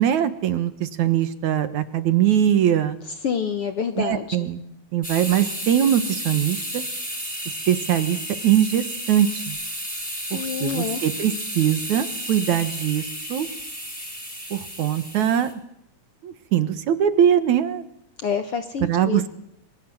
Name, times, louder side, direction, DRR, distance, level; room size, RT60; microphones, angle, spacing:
voice 1, 0.0-3.0 4.0-4.6 4.9-6.8 7.7-9.6 10.3-13.5 14.5-15.6 16.2-17.8 18.8-19.3, right 10 dB, 65° right, 11 dB, 2.6 m, -22 dB
voice 2, 3.2-4.4 10.3-11.0 18.2-19.2, left 6 dB, 60° left, 8 dB, 1.7 m, -27 dB
sound 1, 5.0-15.5, equal, ahead, 5.9 m, -32 dB
27.0 x 22.5 x 7.8 m, 0.76 s
omnidirectional pair, 3.8 m